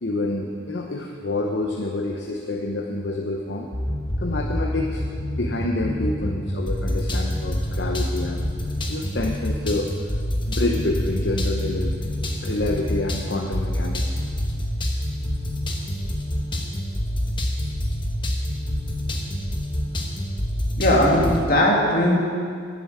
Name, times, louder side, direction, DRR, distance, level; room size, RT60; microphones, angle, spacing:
voice 1, 0.0-3.7 4.2-5.0 5.4-8.4 8.9-9.9 10.5-11.9 12.4-14.2, left 2 dB, 65° left, 1 dB, 0.8 m, -27 dB
sound 1, 3.7-21.5, equal, 25° left, 1.1 m, -27 dB
voice 2, 20.8-22.1, left 1 dB, 50° left, -3 dB, 2.2 m, -18 dB
10.5 x 8.5 x 7.3 m, 2.2 s
head